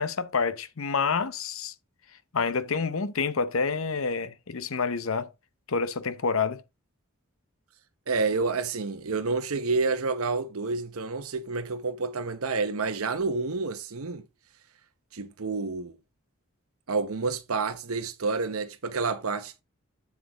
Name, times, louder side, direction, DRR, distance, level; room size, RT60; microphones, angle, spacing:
voice 1, 0.0-1.7 2.3-5.3 5.7-6.6, left 5 dB, 75° left, 0.8 m, -28 dB
voice 2, 8.1-14.2 15.1-15.9 16.9-19.6, right 4 dB, 85° right, 0.9 m, -29 dB
7.6 x 7.6 x 3.0 m
head